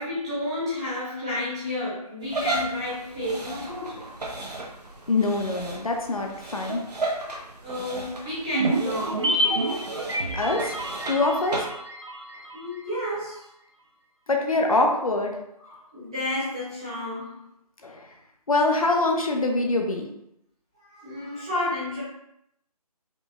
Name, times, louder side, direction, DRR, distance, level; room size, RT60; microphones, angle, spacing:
voice 1, 0.0-4.1 7.6-9.3 12.5-13.5 15.6-17.4 20.8-22.0, left 1 dB, 10° right, -14 dB, 1.0 m, -31 dB
sound 1, 2.2-11.7, right 2 dB, 80° right, 1.0 m, -35 dB
voice 2, 5.1-6.8 10.3-10.8 11.1-11.7 14.3-15.4 17.8-18.1 18.5-20.1, left 2 dB, 60° left, 2 dB, 0.7 m, -24 dB
sound 2, 8.5-13.0 13.2-13.3, right 1 dB, 45° right, 0.5 m, -28 dB
5.1 x 2.3 x 3.2 m, 0.78 s
figure-of-eight pair, 175°, 20 cm